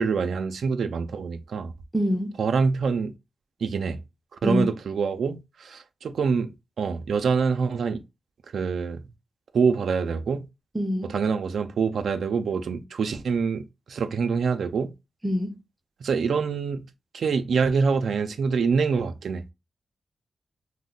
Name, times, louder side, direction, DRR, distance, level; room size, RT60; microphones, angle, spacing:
voice 1, 0.0-1.7 2.4-3.1 3.6-4.0 4.4-8.0 8.5-9.0 9.5-10.4 11.0-13.6 13.9-14.9 16.0-16.8 17.1-19.4, right 5 dB, 80° right, 0.3 m, -25 dB
voice 2, 1.9-2.3 4.4-4.7 10.7-11.1 15.2-15.6, equal, 15° right, 0.6 m, -25 dB
2.7 x 2.1 x 3.7 m
cardioid pair, 55°, 0 cm